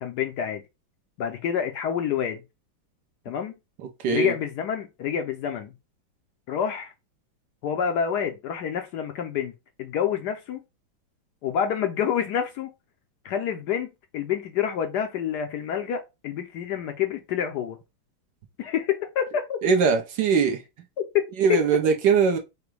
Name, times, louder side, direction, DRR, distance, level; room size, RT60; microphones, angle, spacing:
voice 1, 0.0-0.6 1.2-2.4 3.3-3.5 4.1-5.7 6.5-6.9 7.6-9.5 9.8-10.6 11.4-12.7 13.2-17.8 18.6-19.6 21.1-21.6, left 8 dB, 70° left, 1.1 m, -27 dB
voice 2, 19.6-20.6 21.4-22.4, right 5 dB, 65° right, 1.3 m, -21 dB
5.0 x 2.2 x 4.6 m
omnidirectional pair, 2.2 m